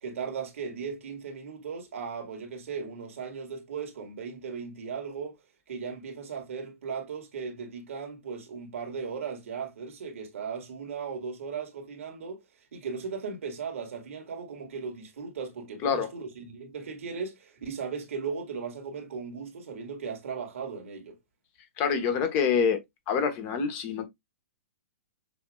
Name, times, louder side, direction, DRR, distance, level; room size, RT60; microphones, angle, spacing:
voice 1, 0.0-5.3 5.7-12.4 12.7-21.2, right 5 dB, 70° right, 1.9 m, -37 dB
voice 2, 21.8-22.8 23.1-24.1, left 6 dB, 35° left, 1.4 m, -26 dB
6.9 x 2.9 x 2.4 m
hypercardioid pair, 125°, 8 cm